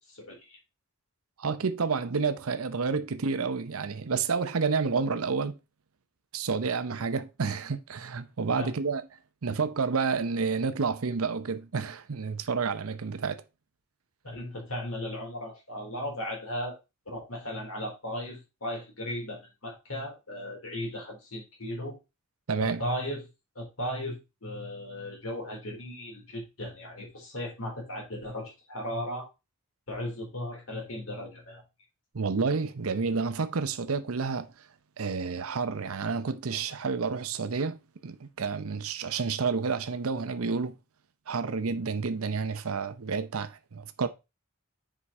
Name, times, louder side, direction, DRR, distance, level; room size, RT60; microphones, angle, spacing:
voice 1, 0.1-0.6 8.6-8.7 14.2-16.7 17.1-22.0 22.6-23.2 23.6-29.3 29.9-31.6, left 1 dB, 75° left, 4.0 m, -36 dB
voice 2, 1.4-5.6 6.3-9.1 9.4-13.4 22.5-22.8 32.1-34.5 35.0-37.8 38.0-40.7 41.3-44.1, right 5 dB, 85° right, 0.7 m, -30 dB
7.3 x 5.0 x 4.2 m
head